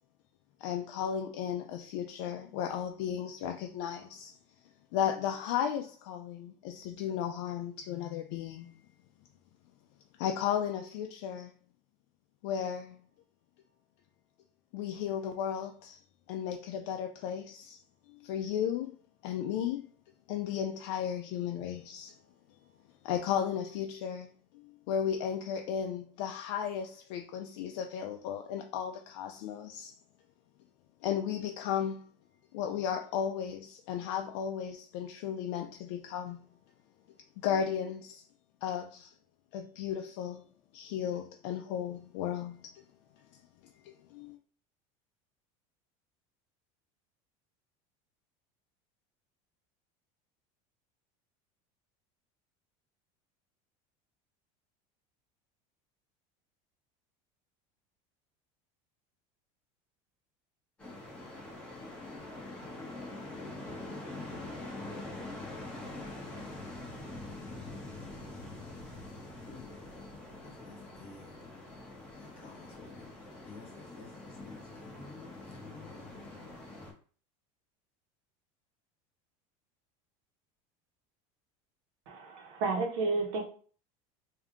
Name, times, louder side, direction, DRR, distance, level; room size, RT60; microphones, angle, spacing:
voice 1, 0.6-4.3 4.9-8.7 10.2-11.5 12.4-13.0 14.7-16.0 16.3-17.8 18.1-18.9 19.2-19.9 20.3-22.1 23.0-24.3 24.5-29.9 31.0-32.0 32.5-36.4 37.4-38.2 38.6-39.1 39.5-40.4 40.7-42.7 43.8-44.4, left 9 dB, 65° left, 0.4 m, -34 dB
sound 1, 60.8-76.9, left 2 dB, 5° left, 1.0 m, -44 dB
voice 2, 69.5-70.0 70.4-71.4 72.2-73.1 73.4-76.5, left 4 dB, 35° left, 1.2 m, -53 dB
voice 3, 82.1-83.4, right 3 dB, 75° right, 1.2 m, -31 dB
3.5 x 2.7 x 3.6 m
cardioid pair, 170°, 16 cm